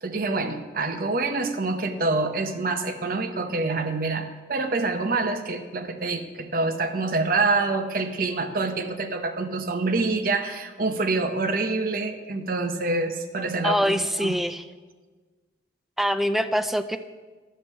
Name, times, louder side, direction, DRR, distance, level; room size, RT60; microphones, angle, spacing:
voice 1, 0.0-14.4, right 3 dB, 50° right, 6 dB, 0.8 m, -26 dB
voice 2, 13.6-14.6 16.0-17.0, equal, ahead, 8 dB, 0.3 m, -24 dB
12.5 x 6.0 x 5.4 m, 1.4 s
head